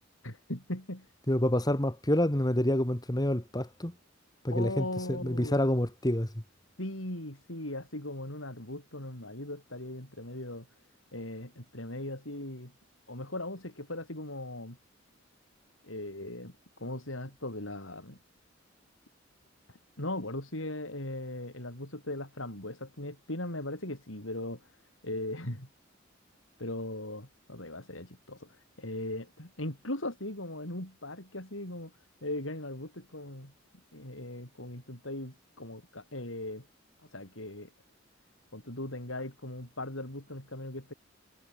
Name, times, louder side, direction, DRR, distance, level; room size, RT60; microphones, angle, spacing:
voice 1, 0.2-1.1 4.5-5.6 6.8-10.7 11.1-12.7 13.1-14.8 15.8-18.2 19.7-24.6 25.0-25.7 26.6-31.9 32.2-33.5 33.9-36.7 37.1-37.7 38.5-40.9, left 1 dB, 80° left, 7.8 m, -39 dB
voice 2, 1.3-3.9 4.4-6.3, left 1 dB, 20° left, 2.2 m, -28 dB
head